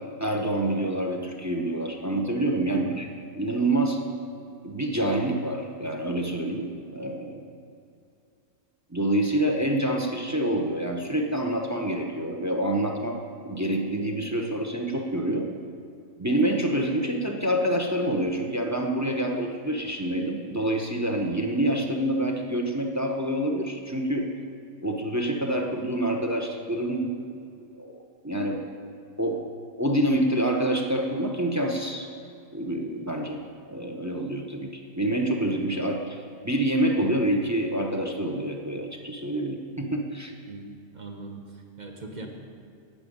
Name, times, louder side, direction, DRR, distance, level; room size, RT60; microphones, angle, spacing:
voice 1, 0.2-3.1 3.4-4.0 4.6-7.5 8.9-13.2 13.4-15.5 16.2-24.3 24.8-27.2 27.7-28.0 28.2-28.7 29.2-29.4 29.8-32.1 32.5-33.4 33.7-36.2 36.4-40.3, right 1 dB, 15° right, 2 dB, 0.7 m, -27 dB
voice 2, 40.5-42.3, right 3 dB, 35° right, 2 dB, 1.2 m, -41 dB
10.0 x 6.8 x 8.7 m, 2.4 s
omnidirectional pair, 1.5 m